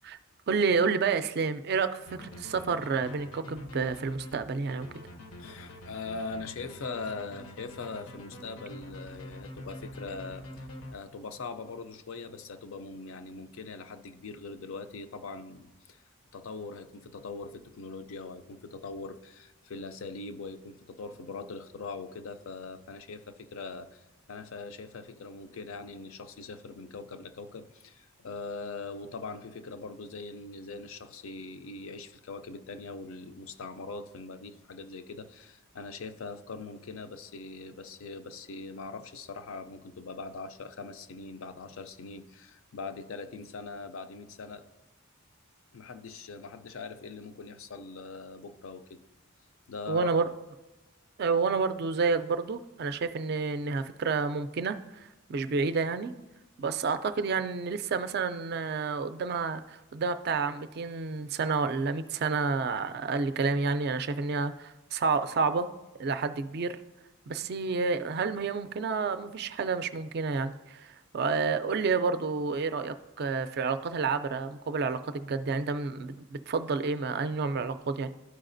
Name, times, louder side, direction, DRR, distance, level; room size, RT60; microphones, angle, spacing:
voice 1, 0.5-4.9 49.9-50.3 51.2-54.8 55.3-56.1 56.6-65.7 66.0-66.8 67.3-78.1, right 4 dB, 50° right, 10 dB, 0.3 m, -29 dB
sound 1, 2.1-11.4, left 1 dB, 85° left, 0.8 m, -45 dB
voice 2, 5.4-16.0 16.3-44.7 45.7-49.0 49.7-50.1, left 4 dB, 70° left, 10 dB, 0.4 m, -41 dB
12.5 x 4.8 x 2.6 m, 1.0 s
head